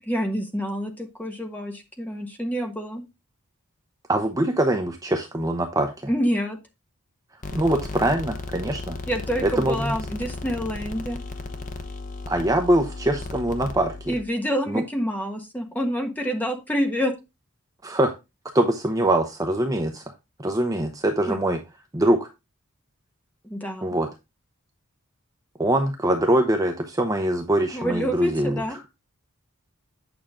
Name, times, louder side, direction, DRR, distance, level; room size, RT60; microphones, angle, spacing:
voice 1, 0.0-3.0 6.1-6.6 9.1-11.2 14.1-17.1 21.3-21.4 23.4-24.0 27.7-28.8, equal, 5° left, 3 dB, 1.3 m, -27 dB
voice 2, 4.1-5.9 7.5-9.0 9.4-10.0 12.3-14.1 14.7-14.8 17.8-18.1 18.5-20.0 20.4-21.6 21.9-22.3 23.8-24.1 25.6-28.6, right 1 dB, 15° right, 4 dB, 0.7 m, -23 dB
sound 1, 7.4-14.3, left 2 dB, 35° left, 0.9 m, -35 dB
9.0 x 5.8 x 3.6 m, 0.25 s
head